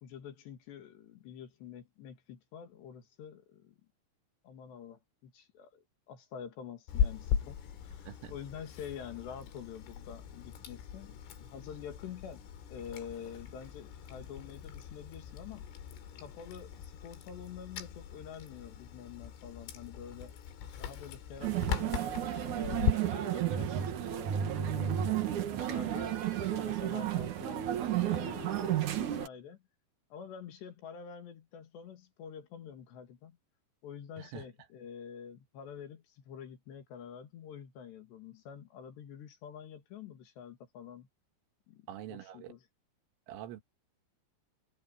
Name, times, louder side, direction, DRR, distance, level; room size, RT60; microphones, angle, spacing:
voice 1, 0.0-3.8 4.4-5.7 6.1-11.2 11.5-12.4 12.7-15.7 16.2-20.4 20.8-25.0 25.5-29.6 30.1-33.4 33.8-41.1 41.7-42.6, left 8 dB, 65° left, 4.2 m, -47 dB
Chewing mastication, 6.9-22.9, left 8 dB, 85° left, 5.5 m, -39 dB
sound 1, 21.4-29.3, right 11 dB, 65° right, 2.0 m, -32 dB
voice 2, 41.9-42.6 43.3-43.6, right 11 dB, 85° right, 4.1 m, -45 dB
omnidirectional pair, 5.7 m